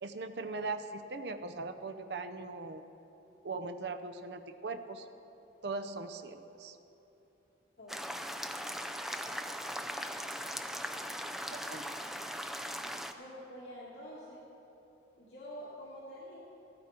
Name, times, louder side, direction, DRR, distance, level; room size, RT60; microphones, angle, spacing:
voice 1, 0.0-2.8 3.4-5.1 5.6-6.8 11.5-11.9, right 3 dB, 65° right, 9 dB, 0.6 m, -40 dB
sound 1, 7.9-13.1, equal, ahead, 0.4 m, -39 dB
voice 2, 13.2-14.4 15.2-16.4, equal, 75° left, -7 dB, 2.2 m, -47 dB
15.0 x 12.0 x 4.4 m, 3.0 s
head